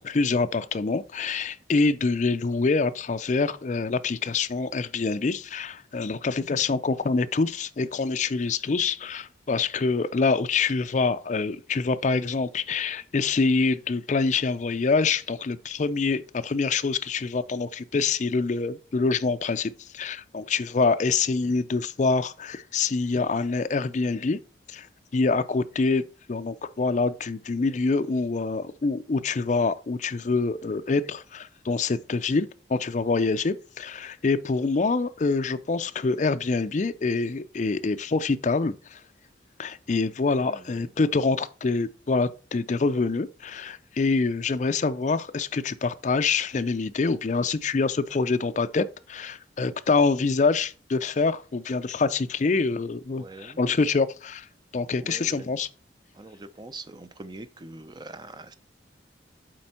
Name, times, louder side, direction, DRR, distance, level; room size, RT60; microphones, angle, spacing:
voice 1, 0.0-24.4 24.7-24.9 25.1-39.0 39.6-54.5 54.7-55.7, left 4 dB, 40° left, 0.4 m, -26 dB
voice 2, 40.4-40.9 53.2-53.6 55.0-55.5 56.1-58.6, right 2 dB, 25° right, 0.5 m, -43 dB
7.6 x 4.4 x 4.3 m
head